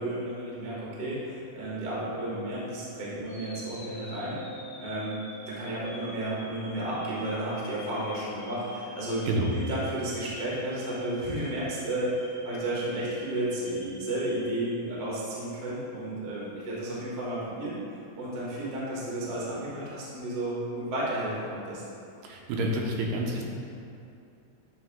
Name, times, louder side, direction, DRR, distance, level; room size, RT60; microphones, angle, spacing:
voice 1, 0.0-4.4 4.8-9.3 9.5-17.7 18.2-21.8, right 1 dB, 55° right, -6 dB, 1.1 m, -32 dB
sound 1, 3.3-15.4, left 1 dB, 45° left, 1.3 m, -45 dB
voice 2, 22.2-23.4, right 1 dB, 85° right, -1 dB, 2.4 m, -28 dB
9.3 x 3.1 x 3.5 m, 2.6 s
omnidirectional pair, 3.9 m